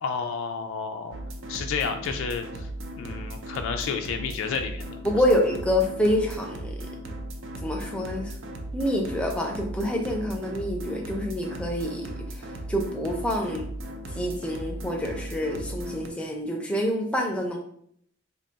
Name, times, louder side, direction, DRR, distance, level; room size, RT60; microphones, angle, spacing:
voice 1, 0.0-1.2 1.5-2.7 3.0-5.0, left 5 dB, 80° left, 6 dB, 0.3 m, -31 dB
sound 1, 1.1-16.1, right 1 dB, 75° right, 0.4 m, -37 dB
voice 2, 5.0-6.7 7.6-8.3 8.7-12.1 12.3-13.7 14.1-17.6, left 1 dB, 5° left, 1 dB, 0.4 m, -27 dB
2.8 x 2.3 x 3.9 m, 0.66 s
head